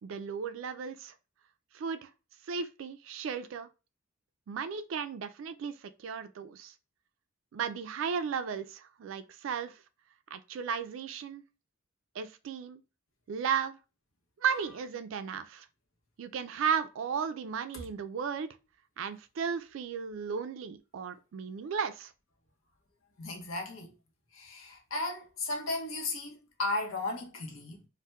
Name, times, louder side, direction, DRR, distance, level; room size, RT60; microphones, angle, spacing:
voice 1, 0.0-1.1 1.7-2.1 2.5-3.7 4.5-6.7 7.5-9.8 10.3-11.4 12.2-12.8 13.3-13.8 14.4-15.7 16.2-18.5 19.0-22.1, right 6 dB, 65° right, 0.3 m, -35 dB
voice 2, 23.2-23.9 24.3-27.9, left 2 dB, 75° left, 0.7 m, -35 dB
4.1 x 2.1 x 2.2 m
head